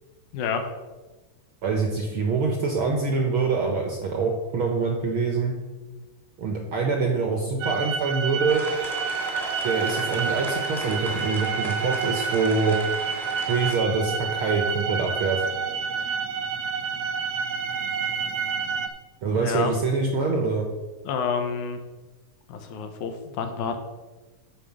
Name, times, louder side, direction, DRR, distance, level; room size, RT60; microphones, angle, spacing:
voice 1, 1.6-5.6 6.4-8.6 9.6-12.8 13.5-15.4 19.2-20.7, right 4 dB, 65° right, 1 dB, 1.4 m, -25 dB
sound 1, 7.6-18.9, right 6 dB, 85° right, 2.3 m, -29 dB
sound 2, 8.5-13.8, equal, ahead, 1.0 m, -37 dB
voice 2, 19.3-19.7 21.0-21.8 22.5-23.8, left 6 dB, 80° left, 6 dB, 2.3 m, -28 dB
9.1 x 4.8 x 7.3 m, 1.2 s
omnidirectional pair, 3.6 m